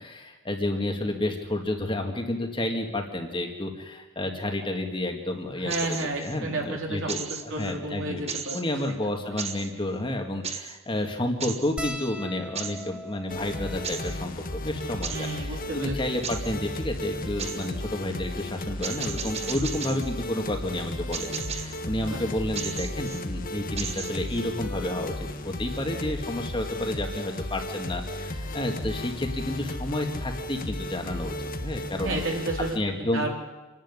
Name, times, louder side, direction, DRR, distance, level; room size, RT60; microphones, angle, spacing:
voice 1, 0.0-5.7 6.0-8.2 8.5-32.2 32.8-33.3, left 1 dB, 25° left, 3 dB, 2.1 m, -30 dB
voice 2, 5.6-8.6 8.9-9.0 15.1-16.0 22.0-22.2 32.0-33.3, right 2 dB, 65° right, 1 dB, 4.0 m, -32 dB
sound 1, 5.7-6.4 7.1-7.7 8.3-8.9 9.4-9.7 10.4-10.8 11.4-11.7 12.6-12.9 13.8-14.2 15.0-15.3 16.2-16.6 17.4-17.7 18.8-20.1 21.1-21.8 22.6-23.2 23.8-24.4, right 6 dB, 30° right, 1.1 m, -35 dB
sound 2, 11.8-16.4 17.1-17.2 17.4-17.6 18.9-19.1 20.5-20.6 20.9-21.1, equal, 5° right, 1.1 m, -42 dB
sound 3, 13.3-32.8, left 1 dB, 40° left, 1.3 m, -34 dB
27.5 x 11.0 x 9.9 m, 1.2 s
head